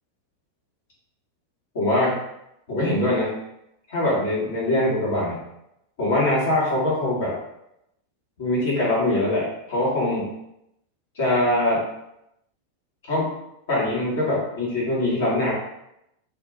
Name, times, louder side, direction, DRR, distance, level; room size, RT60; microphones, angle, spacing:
voice 1, 1.7-2.1 2.7-3.3 3.9-5.4 6.0-7.3 8.4-10.3 11.1-11.8 13.1-13.3 13.7-15.5, left 1 dB, 55° left, -5 dB, 1.3 m, -22 dB
2.5 x 2.4 x 3.4 m, 0.83 s
figure-of-eight pair, 90°, 0 cm